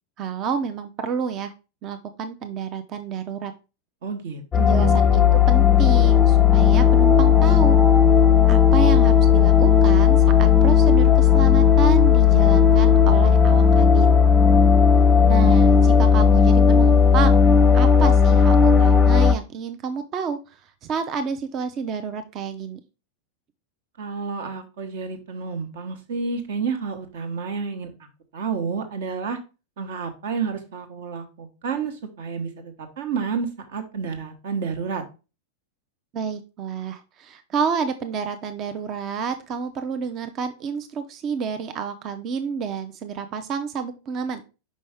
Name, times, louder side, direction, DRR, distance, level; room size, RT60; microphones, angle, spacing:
voice 1, 0.2-1.5 1.8-3.5 4.5-5.2 5.5-7.8 8.5-14.2 15.3-17.5 17.7-22.8 36.1-44.4, right 6 dB, 35° right, 9 dB, 0.6 m, -29 dB
voice 2, 4.0-5.0 14.9-15.5 24.0-28.1 28.3-29.4 29.8-35.0, right 5 dB, 55° right, 7 dB, 1.2 m, -30 dB
sound 1, 4.5-19.3, left 7 dB, 15° left, 0.6 m, -15 dB
5.3 x 5.3 x 3.5 m, 0.30 s
figure-of-eight pair, 90°, 0 cm